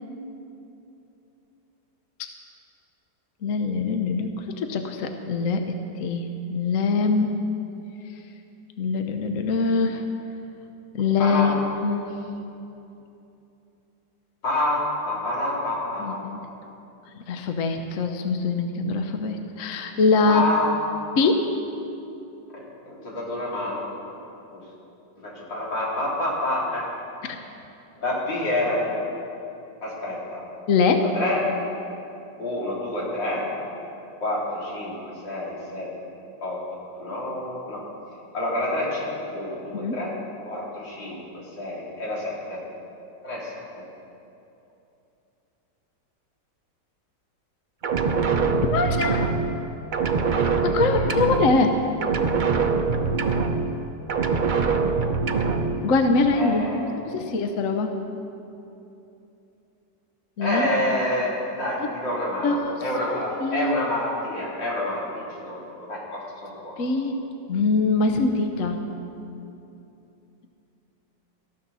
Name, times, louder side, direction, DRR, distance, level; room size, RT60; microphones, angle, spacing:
voice 1, 3.4-7.3 8.8-10.0 10.9-12.2 16.0-16.4 17.3-20.4 21.2-21.5 27.2-27.4 30.7-31.1 39.8-40.0 48.6-49.3 50.6-51.8 55.8-57.9 60.4-60.7 62.4-62.7 63.4-63.7 66.8-67.1 67.5-68.8, left 4 dB, 55° left, 5 dB, 1.1 m, -23 dB
voice 2, 11.2-11.6 14.4-16.2 20.3-20.8 22.5-23.9 24.5-24.7 25.2-26.9 28.0-29.0 29.8-30.4 31.0-31.6 32.4-33.5 34.2-35.9 36.4-36.6 36.9-37.8 38.3-40.1 40.4-42.6 43.2-43.6 50.9-51.1 56.3-57.2 60.4-66.9, left 1 dB, 75° left, -6 dB, 3.9 m, -28 dB
sound 1, 47.8-49.7 49.9-51.8 52.0-53.8 54.1-55.8, right 4 dB, 80° right, 0.4 m, -23 dB
18.0 x 14.5 x 4.1 m, 2.9 s
omnidirectional pair, 2.0 m